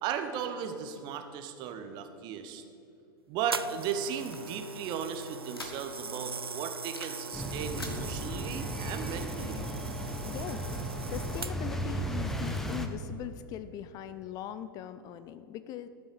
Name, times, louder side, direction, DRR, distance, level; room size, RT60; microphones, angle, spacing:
voice 1, 0.0-2.6 3.3-9.6, right 7 dB, 35° right, 7 dB, 1.2 m, -36 dB
sound 1, 3.5-11.8 12.6-12.8, right 4 dB, 85° right, 0.4 m, -41 dB
sound 2, 3.7-6.2 6.5-7.3 7.5-8.0, left 2 dB, 80° left, 1.8 m, -46 dB
sound 3, 7.3-12.9, equal, 5° left, 1.0 m, -35 dB
voice 2, 10.3-15.9, left 11 dB, 30° left, 12 dB, 0.5 m, -41 dB
13.0 x 7.7 x 6.9 m, 2.7 s
figure-of-eight pair, 95°, 12 cm